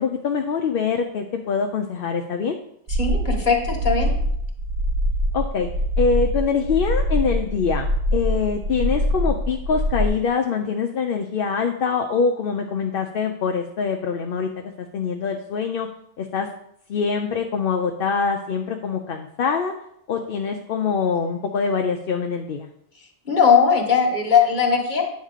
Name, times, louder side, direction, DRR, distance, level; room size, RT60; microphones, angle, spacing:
voice 1, 0.0-2.6 5.3-5.7 6.0-15.9 16.2-16.5 16.9-19.7 20.1-22.7, left 5 dB, 65° left, 4 dB, 0.8 m, -24 dB
voice 2, 2.9-4.2 23.2-25.0, left 6 dB, 45° left, 1 dB, 1.6 m, -19 dB
sound 1, 2.9-10.1, equal, 75° right, 1.2 m, -23 dB
9.4 x 3.7 x 6.6 m, 0.73 s
omnidirectional pair, 1.1 m